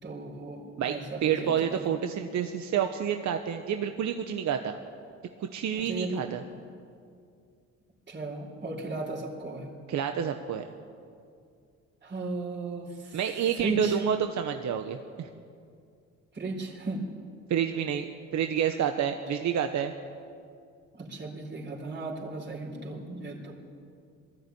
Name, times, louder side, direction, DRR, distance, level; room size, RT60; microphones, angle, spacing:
voice 1, 0.0-1.9 5.7-6.3 8.1-9.7 12.0-14.0 16.3-17.0 20.9-23.5, right 2 dB, 35° right, -1 dB, 4.2 m, -36 dB
voice 2, 0.8-4.8 5.5-6.4 9.9-10.6 13.1-15.3 17.5-19.9, right 8 dB, 70° right, 6 dB, 1.1 m, -29 dB
19.5 x 14.0 x 9.5 m, 2.3 s
cardioid pair, 90°, 30 cm